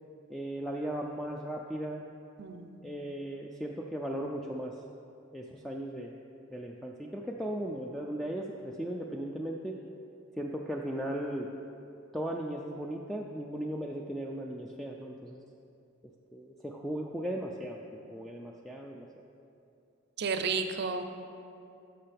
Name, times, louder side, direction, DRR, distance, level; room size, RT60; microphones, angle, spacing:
voice 1, 0.3-2.1 2.8-4.7 5.3-6.1 6.5-9.8 10.4-11.5 12.1-15.4 16.3-19.1, right 1 dB, ahead, -1 dB, 0.3 m, -37 dB
voice 2, 2.4-2.8 20.2-21.0, right 5 dB, 55° right, 7 dB, 0.5 m, -32 dB
11.0 x 6.7 x 3.4 m, 2.7 s
head